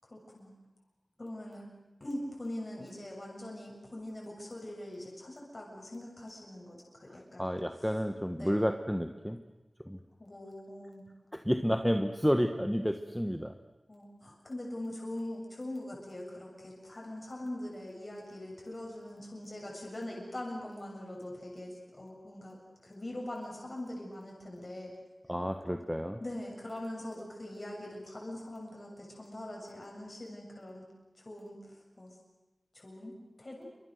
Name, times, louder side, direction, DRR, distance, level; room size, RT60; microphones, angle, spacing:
voice 1, 0.0-0.5 1.2-1.7 2.0-7.5 8.4-8.6 10.2-11.1 13.9-24.9 26.2-30.8 31.2-32.2 32.7-33.7, left 1 dB, 40° left, -2 dB, 7.1 m, -42 dB
voice 2, 7.1-9.4 9.9-10.0 11.3-13.5 25.3-26.2, equal, ahead, 6 dB, 1.3 m, -31 dB
28.0 x 25.5 x 6.7 m, 1.1 s
wide cardioid pair, 75°, 0 cm